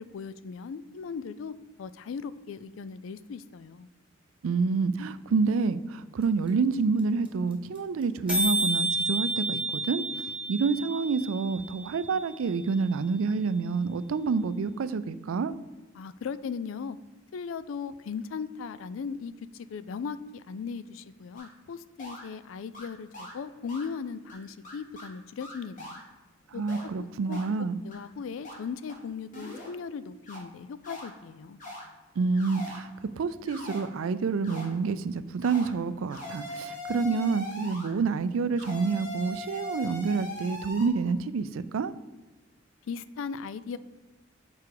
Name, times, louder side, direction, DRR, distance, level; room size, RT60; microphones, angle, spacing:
voice 1, 0.0-3.9 15.9-17.0 17.3-26.0 26.5-31.6 42.9-43.8, left 5 dB, 70° left, 16 dB, 0.4 m, -38 dB
voice 2, 4.4-10.0 10.5-15.5 26.5-27.8 32.2-41.9, right 4 dB, 90° right, 15 dB, 0.4 m, -28 dB
sound 1, 6.2-6.3 6.5-6.6 6.7-7.0 7.2-7.3 7.5-7.8 8.0-8.1 8.3-12.3, right 1 dB, 5° right, 1.3 m, -30 dB
sound 2, 21.4-21.5 22.0-22.2 22.7-22.9 23.1-23.3 23.7-23.9 24.3-24.4 24.6-25.1 25.4-26.0 26.7-26.8 27.3-27.4 27.9-28.0 28.4-28.6 28.9-29.0 29.3-29.7 30.3-30.4 30.8-31.1 31.6-31.8 32.3-32.8 33.5-33.8 34.4-34.6 35.4-35.7 36.1-37.9 38.6-40.9, left 1 dB, 40° left, 2.0 m, -40 dB
6.9 x 4.8 x 4.7 m, 1.2 s
head